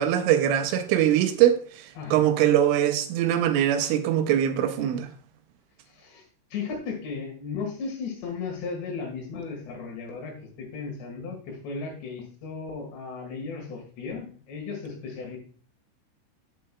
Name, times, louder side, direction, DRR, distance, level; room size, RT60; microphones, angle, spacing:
voice 1, 0.0-5.1, right 11 dB, 85° right, 3.1 m, -22 dB
voice 2, 5.9-6.3 6.5-15.4, left 5 dB, 65° left, 3.8 m, -35 dB
14.5 x 5.6 x 2.3 m
omnidirectional pair, 5.6 m